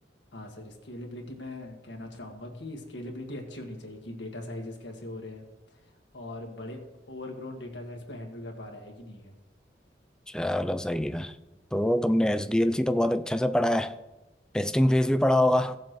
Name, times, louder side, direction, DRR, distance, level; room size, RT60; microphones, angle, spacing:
voice 1, 0.3-5.4 5.7-6.8 7.1-9.3, left 1 dB, 85° left, 1.7 m, -40 dB
voice 2, 10.3-11.3 11.7-14.0 14.5-15.8, left 1 dB, 5° left, 0.3 m, -24 dB
16.5 x 7.4 x 3.1 m
head